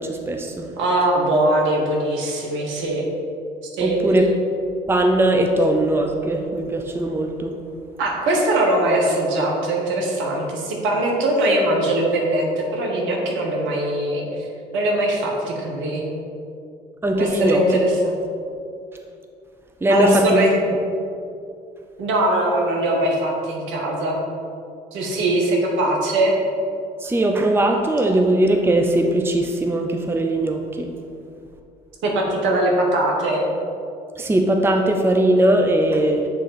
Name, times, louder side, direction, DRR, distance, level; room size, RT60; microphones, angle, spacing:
voice 1, 0.0-0.8 3.8-4.3 4.9-7.5 17.0-17.6 19.8-20.4 27.0-30.9 34.2-36.3, right 1 dB, 10° right, 3 dB, 0.6 m, -19 dB
voice 2, 0.8-3.1 3.8-4.0 8.0-14.5 14.7-16.0 17.1-18.1 19.9-20.6 22.0-24.2 24.9-26.4 32.0-33.5, right 1 dB, 70° right, -1 dB, 1.2 m, -21 dB
7.3 x 3.7 x 4.1 m, 2.6 s
hypercardioid pair, 55°, 21 cm